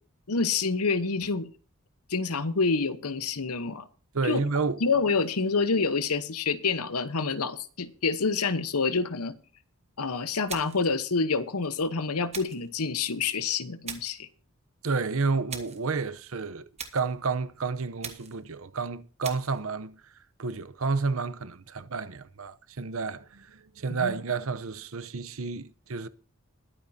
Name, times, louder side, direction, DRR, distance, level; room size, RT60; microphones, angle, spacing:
voice 1, 0.3-1.5 2.1-3.9 4.2-4.4 4.8-9.3 10.0-14.3 23.9-24.1, left 4 dB, 90° left, 1.0 m, -27 dB
voice 2, 4.1-4.8 14.8-16.6 16.9-20.0 20.4-26.1, right 4 dB, 65° right, 0.8 m, -30 dB
sound 1, 10.5-10.9 12.3-12.7 13.8-14.2 15.5-15.9 16.8-17.1 18.0-18.4 19.2-19.6, right 7 dB, 30° right, 1.4 m, -40 dB
21.0 x 8.7 x 2.8 m
head